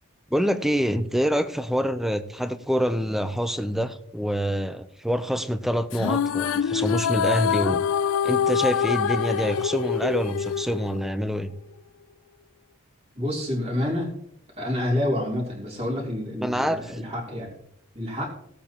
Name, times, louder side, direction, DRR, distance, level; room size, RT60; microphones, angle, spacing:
voice 1, 0.3-7.8 8.2-11.5 16.4-16.9, equal, ahead, 11 dB, 0.6 m, -26 dB
sound 1, 5.9-11.4, left 7 dB, 65° left, 0.3 m, -25 dB
voice 2, 13.1-14.1 14.6-17.6 17.9-18.3, left 1 dB, 30° right, -2 dB, 3.2 m, -28 dB
17.5 x 8.6 x 2.9 m, 0.70 s
head